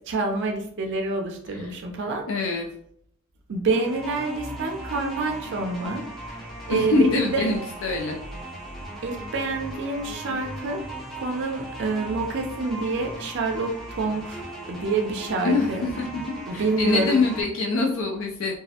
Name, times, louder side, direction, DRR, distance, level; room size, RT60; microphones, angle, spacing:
voice 1, 0.1-2.6 3.5-7.5 9.0-10.8 11.1-15.9 16.5-17.2, right 3 dB, 55° right, 3 dB, 0.4 m, -28 dB
voice 2, 2.3-2.7 6.7-8.2 15.4-15.7 16.0-16.2 16.5-18.6, left 3 dB, 65° left, 1 dB, 0.3 m, -24 dB
sound 1, 3.7-17.4, right 1 dB, ahead, 0.5 m, -38 dB
2.3 x 2.0 x 2.7 m, 0.68 s
head